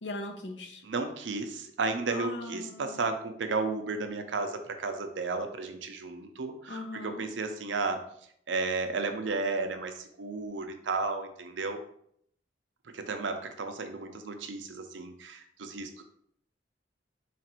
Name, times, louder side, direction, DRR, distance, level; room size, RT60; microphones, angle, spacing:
voice 1, 0.0-0.8 2.1-3.1 6.7-7.3, left 1 dB, 70° left, 4 dB, 0.6 m, -39 dB
voice 2, 0.8-8.1 8.5-11.8 12.9-16.0, right 3 dB, 80° right, 7 dB, 0.6 m, -33 dB
4.0 x 2.5 x 4.3 m, 0.68 s
head